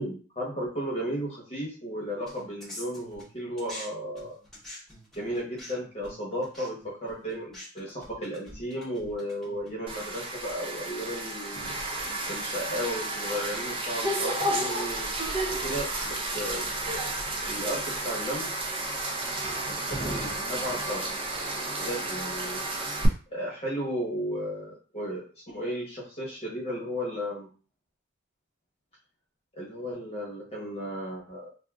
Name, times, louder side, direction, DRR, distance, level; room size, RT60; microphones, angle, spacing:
voice 1, 0.0-4.4 5.1-11.7 12.3-15.1 15.5-16.7 17.4-18.4 19.7-21.0 21.8-22.6 23.3-27.5 29.5-31.5, equal, 30° left, -4 dB, 0.9 m, -34 dB
sound 1, 2.3-3.9 4.1-9.9, left 1 dB, ahead, 0.9 m, -46 dB
sound 2, 9.9-23.1, right 2 dB, 25° right, 0.4 m, -32 dB
2.5 x 2.4 x 3.5 m, 0.37 s
head